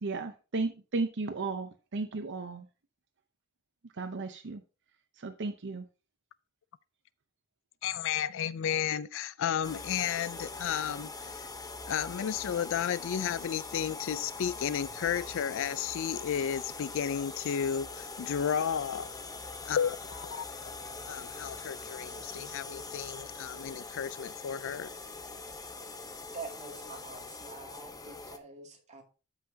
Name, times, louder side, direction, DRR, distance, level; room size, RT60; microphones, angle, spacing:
voice 1, 0.0-2.6 4.0-4.6 5.2-5.8, right 3 dB, 55° right, 0.7 m, -34 dB
voice 2, 7.8-11.5 11.9-19.1 19.7-20.4 21.0-24.9, left 8 dB, 60° left, 0.4 m, -33 dB
sound 1, 9.6-28.4, left 3 dB, 15° left, 0.8 m, -43 dB
voice 3, 26.3-29.0, right 4 dB, 35° right, 2.3 m, -46 dB
13.0 x 5.7 x 2.7 m
head